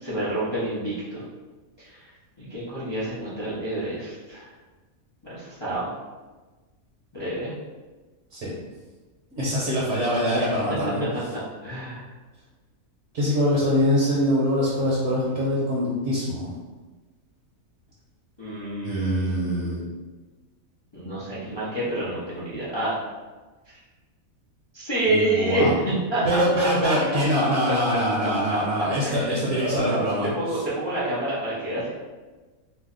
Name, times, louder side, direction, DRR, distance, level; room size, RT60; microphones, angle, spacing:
voice 1, 0.0-1.2 1.8-2.0 2.4-4.4 5.2-5.9 7.1-7.5 10.3-10.5 11.6-12.0 18.4-19.9 20.9-23.0 24.7-27.0 27.7-27.8 28.5-28.6 29.0-30.0 30.4-31.9, right 1 dB, 40° left, -9 dB, 0.3 m, -28 dB
voice 2, 9.4-11.0 13.1-16.5 18.8-19.8 25.0-25.7 26.2-30.6, equal, 60° right, -6 dB, 0.9 m, -24 dB
2.7 x 2.1 x 3.7 m, 1.3 s
omnidirectional pair, 1.5 m